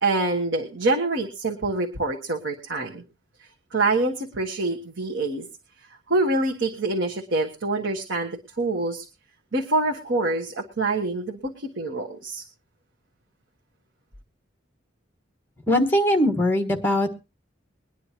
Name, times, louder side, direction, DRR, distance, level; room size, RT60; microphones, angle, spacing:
voice 1, 0.0-3.0 3.7-5.5 6.1-9.0 9.5-12.4, right 2 dB, 75° right, 1 dB, 1.4 m, -26 dB
voice 2, 15.7-17.1, left 1 dB, 10° left, 6 dB, 1.4 m, -21 dB
22.5 x 9.9 x 2.9 m, 0.27 s
head